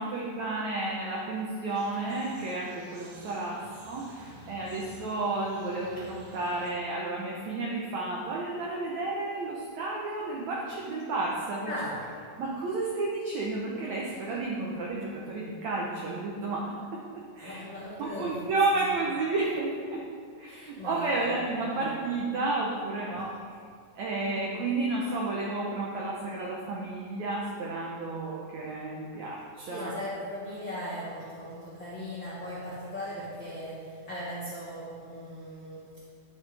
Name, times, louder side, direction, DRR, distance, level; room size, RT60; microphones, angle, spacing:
voice 1, 0.0-11.7 12.4-17.6 18.0-20.1 20.4-23.6 23.9-30.0, right 2 dB, 80° right, -3 dB, 1.6 m, -32 dB
sound 1, 1.7-6.7, right 2 dB, 55° right, 2.7 m, -54 dB
voice 2, 4.2-4.8 6.0-6.1 11.6-12.0 14.1-14.2 17.4-18.5 20.8-21.4 21.6-21.8 29.7-35.9, equal, 55° left, -9 dB, 1.4 m, -38 dB
10.5 x 8.7 x 3.4 m, 2.2 s
omnidirectional pair, 4.4 m